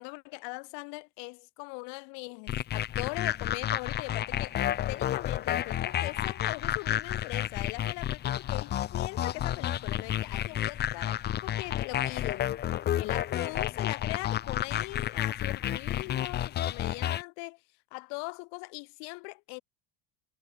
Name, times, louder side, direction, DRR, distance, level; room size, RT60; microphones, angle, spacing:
voice 1, 0.0-4.6 4.9-12.5 13.0-17.6 17.9-19.6, left 40 dB or more, 70° left, 2.7 m, -40 dB
sound 1, 2.5-17.2, left 11 dB, 25° left, 0.7 m, -31 dB
cardioid pair, 175°, 43 cm